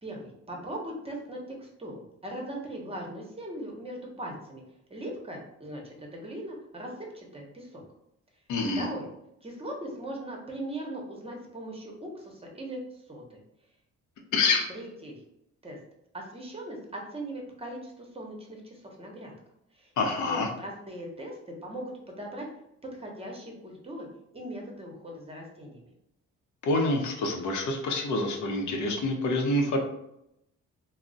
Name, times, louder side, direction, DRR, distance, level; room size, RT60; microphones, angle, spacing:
voice 1, 0.0-1.9 2.2-4.6 4.9-7.8 8.8-9.1 9.4-13.4 14.7-15.2 15.6-15.8 16.1-19.3 19.7-19.9 20.2-22.5 23.0-24.1 24.3-25.9, right 1 dB, 20° right, 0 dB, 0.7 m, -39 dB
voice 2, 8.5-8.8 14.3-14.7 20.0-20.5 26.6-29.8, left 2 dB, 75° left, 2 dB, 0.7 m, -27 dB
2.3 x 2.0 x 3.8 m, 0.80 s
cardioid pair, 90°, 30 cm